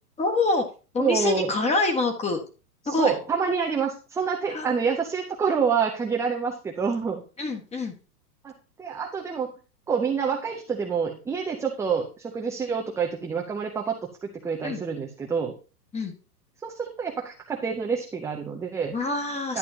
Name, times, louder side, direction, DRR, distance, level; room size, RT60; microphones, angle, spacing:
voice 1, 0.2-0.7 0.9-2.4 2.8-3.1 4.5-4.8 7.4-7.9 14.6-14.8 15.9-16.1 18.9-19.6, left 3 dB, 15° left, 5 dB, 1.6 m, -25 dB
voice 2, 1.0-1.5 2.8-7.2 8.4-8.5 8.8-9.6 9.9-15.5 16.6-18.9 19.5-19.6, right 6 dB, 5° right, 1 dB, 0.6 m, -27 dB
11.0 x 9.2 x 2.8 m, 0.34 s
hypercardioid pair, 130°, 48 cm